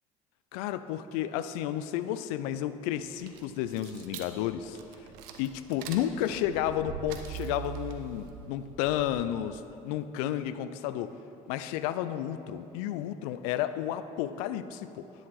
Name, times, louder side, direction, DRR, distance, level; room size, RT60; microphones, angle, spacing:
voice 1, 0.5-4.8 5.4-11.2 11.5-15.0, left 11 dB, 75° left, 12 dB, 0.4 m, -32 dB
sound 1, 3.0-9.6, right 9 dB, 75° right, 0.7 m, -43 dB
10.5 x 6.4 x 4.3 m, 2.7 s
hypercardioid pair, 65°, 19 cm